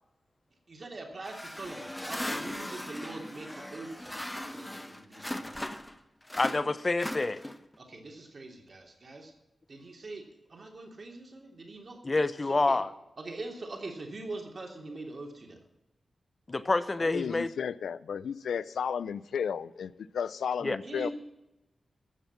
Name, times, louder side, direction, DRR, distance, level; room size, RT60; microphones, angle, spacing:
voice 1, 0.7-5.6 7.8-9.3 9.7-12.0 12.4-12.8 13.2-15.6 20.8-21.1, right 2 dB, 55° right, 3.0 m, -43 dB
sound 1, 1.2-6.0 6.3-7.8, left 1 dB, 15° left, 1.0 m, -38 dB
voice 2, 6.4-7.4 12.0-12.9 16.5-17.5 20.6-20.8, left 2 dB, 40° left, 0.7 m, -27 dB
voice 3, 17.0-21.1, left 7 dB, 90° left, 0.4 m, -33 dB
13.0 x 7.2 x 7.4 m
cardioid pair, 45°, 0 cm